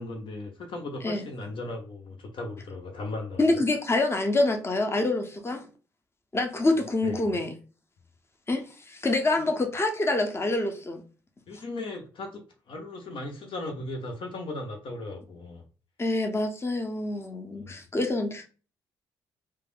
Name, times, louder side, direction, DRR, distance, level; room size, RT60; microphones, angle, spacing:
voice 1, 0.0-3.6 7.0-7.2 9.4-9.5 11.5-15.6 17.6-17.7, left 2 dB, 60° left, 0.7 m, -37 dB
voice 2, 3.4-5.6 6.3-7.5 8.5-11.0 16.0-18.5, left 2 dB, 25° left, 0.7 m, -26 dB
3.2 x 2.2 x 2.4 m
hypercardioid pair, 50°, 10 cm